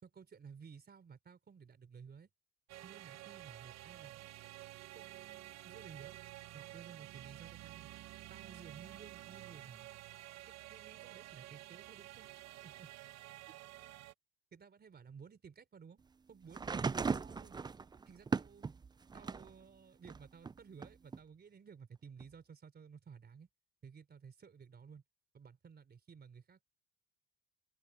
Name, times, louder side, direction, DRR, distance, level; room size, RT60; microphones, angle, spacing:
voice 1, 0.0-2.3 2.8-4.3 4.9-6.2 6.5-7.9 8.3-9.9 10.4-12.3 12.6-12.9 14.5-16.0 16.3-17.6 18.1-18.7 19.1-23.5 23.8-25.0 25.3-26.7, right 6 dB, 35° right, 4.0 m, -55 dB
sound 1, 2.7-14.1, right 16 dB, 60° right, 1.0 m, -51 dB
sound 2, 16.5-19.5 20.0-21.2 22.2-22.3, right 5 dB, 15° right, 0.4 m, -38 dB
cardioid pair, 105°, 30 cm